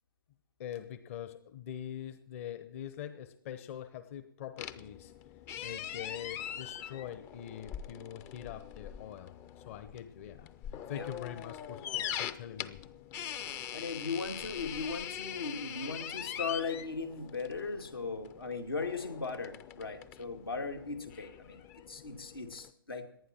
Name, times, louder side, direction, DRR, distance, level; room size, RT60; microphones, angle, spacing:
voice 1, 0.6-5.1 5.6-10.5 10.9-12.8, left 10 dB, 35° left, 11 dB, 0.9 m, -44 dB
sound 1, 4.6-22.7, left 10 dB, 20° left, 0.6 m, -43 dB
voice 2, 13.7-21.6 21.9-23.0, left 4 dB, 85° left, 3 dB, 2.5 m, -38 dB
18.5 x 11.5 x 4.4 m, 0.71 s
figure-of-eight pair, 130°, 12 cm